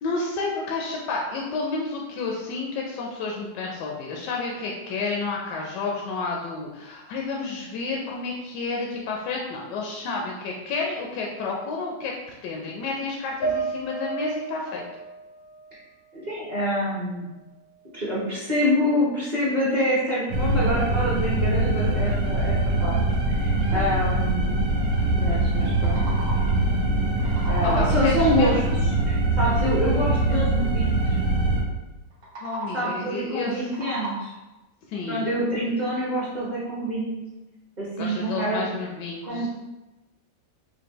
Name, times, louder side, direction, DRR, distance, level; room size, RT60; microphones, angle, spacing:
voice 1, 0.0-12.1 12.4-14.8 23.7-24.0 27.6-28.8 32.4-33.7 34.9-35.2 38.0-39.5, left 3 dB, 75° left, -1 dB, 1.2 m, -30 dB
sound 1, 13.4-16.8 17.2-18.2, right 4 dB, 50° left, 0.8 m, -34 dB
voice 2, 16.1-17.3 17.9-22.5 22.8-22.9 23.3-24.7 25.1-26.0 27.5-28.6 29.0-31.2 32.7-34.3 35.1-37.1 37.8-38.7 39.2-39.5, equal, 30° right, -8 dB, 0.9 m, -26 dB
sound 2, 20.3-31.6, right 2 dB, 80° right, 1.3 m, -23 dB
sound 3, 25.5-26.6 27.0-28.1 32.1-33.0 33.4-34.5, right 2 dB, 55° right, 1.0 m, -37 dB
4.3 x 2.6 x 2.9 m, 1.0 s
omnidirectional pair, 1.9 m